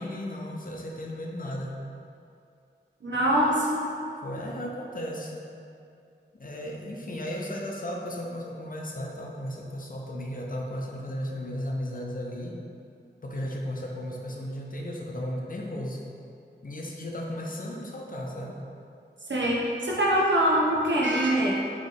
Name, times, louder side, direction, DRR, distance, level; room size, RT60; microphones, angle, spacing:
voice 1, 0.0-1.8 4.2-5.5 6.3-12.6 13.2-16.0 16.6-18.6, equal, 45° left, -1 dB, 0.6 m, -35 dB
voice 2, 3.0-3.9 19.3-21.5, right 1 dB, 75° right, -4 dB, 0.8 m, -23 dB
3.7 x 3.0 x 3.7 m, 2.5 s
wide cardioid pair, 55°, 19 cm